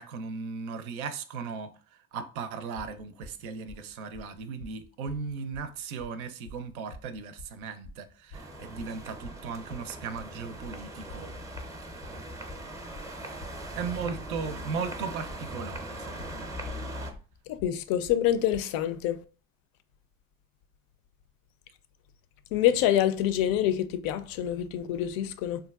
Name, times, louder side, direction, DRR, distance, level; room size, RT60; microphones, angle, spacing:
voice 1, 0.0-11.3 13.7-16.5, right 5 dB, 80° right, 0.5 m, -37 dB
sound 1, 2.8-18.6, left 1 dB, 90° left, 0.9 m, -48 dB
sound 2, 8.3-17.1, right 1 dB, 10° right, 0.5 m, -40 dB
voice 2, 17.5-19.2 22.5-25.6, left 11 dB, 60° left, 0.5 m, -26 dB
3.6 x 2.3 x 2.3 m
hypercardioid pair, 65°, 41 cm